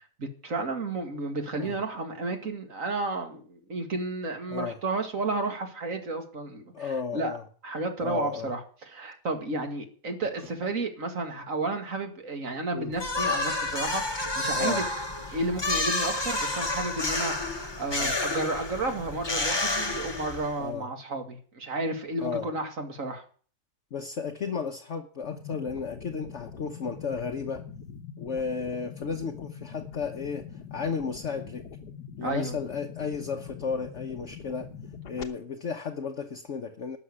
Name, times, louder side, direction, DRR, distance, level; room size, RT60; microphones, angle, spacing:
voice 1, 0.2-7.3 7.6-14.9 15.3-23.2 32.2-32.6, right 2 dB, 50° right, 5 dB, 2.5 m, -32 dB
voice 2, 6.7-7.4 8.0-8.5 12.7-12.9 14.5-14.8 18.0-18.2 20.6-20.9 22.2-22.5 23.9-27.6 28.2-31.6 32.2-34.7 35.0-37.0, left 5 dB, 50° left, 4 dB, 1.2 m, -33 dB
sound 1, 13.0-20.6, left 2 dB, 15° left, 1.2 m, -30 dB
sound 2, 25.2-35.2, left 7 dB, 75° left, 1.6 m, -43 dB
12.5 x 6.6 x 9.9 m, 0.43 s
omnidirectional pair, 1.7 m